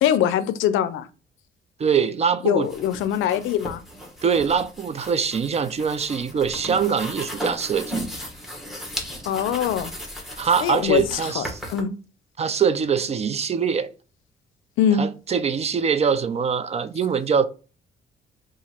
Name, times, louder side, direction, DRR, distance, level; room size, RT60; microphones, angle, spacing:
voice 1, 0.0-1.1 2.4-3.8 9.3-9.9 10.6-11.9 14.8-15.1, left 9 dB, 85° left, 0.4 m, -22 dB
voice 2, 1.8-2.7 4.2-8.1 10.4-11.6 12.4-13.9 15.0-17.4, right 6 dB, 35° right, 0.4 m, -23 dB
sound 1, 2.6-11.8, equal, ahead, 1.1 m, -36 dB
2.9 x 2.5 x 4.2 m
cardioid pair, 90°, 20 cm